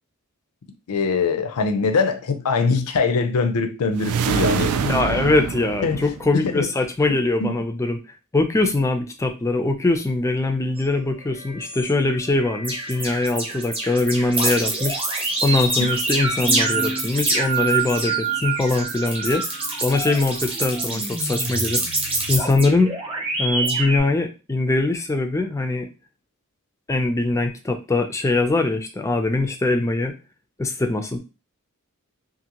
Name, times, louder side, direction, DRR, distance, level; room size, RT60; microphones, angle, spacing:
voice 1, 0.9-4.8 5.8-6.7 7.4-7.5 15.8-15.9, left 4 dB, 90° left, 8 dB, 0.5 m, -22 dB
sound 1, 4.0-6.6, right 6 dB, 75° right, 0.3 m, -25 dB
voice 2, 4.8-8.0 8.3-15.0 15.4-19.4 19.8-21.8 22.3-23.0 23.4-25.9 26.9-30.1 30.6-31.2, left 2 dB, 15° left, 5 dB, 0.3 m, -22 dB
sound 2, 10.8-10.9 11.3-11.9 12.4-24.0, right 3 dB, 25° right, 0.8 m, -25 dB
2.7 x 2.5 x 2.8 m, 0.30 s
head